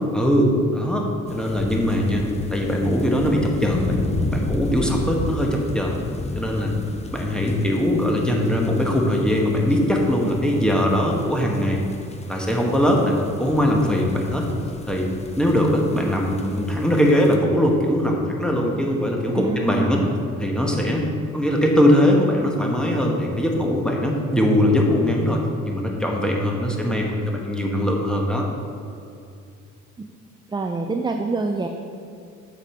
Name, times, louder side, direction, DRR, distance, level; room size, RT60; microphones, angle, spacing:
voice 1, 0.1-2.2 2.5-4.0 4.3-6.0 6.3-6.7 7.1-11.8 12.3-14.5 14.9-15.1 15.3-20.0 20.4-21.1 21.3-28.4, equal, 5° left, -1 dB, 1.2 m, -21 dB
sound 1, 1.3-17.4, left 2 dB, 20° left, 0.6 m, -32 dB
voice 2, 19.3-20.1 30.0-30.1 30.5-31.7, right 3 dB, 15° right, 4 dB, 0.4 m, -26 dB
7.2 x 5.3 x 4.4 m, 2.5 s
cardioid pair, 90°, 30 cm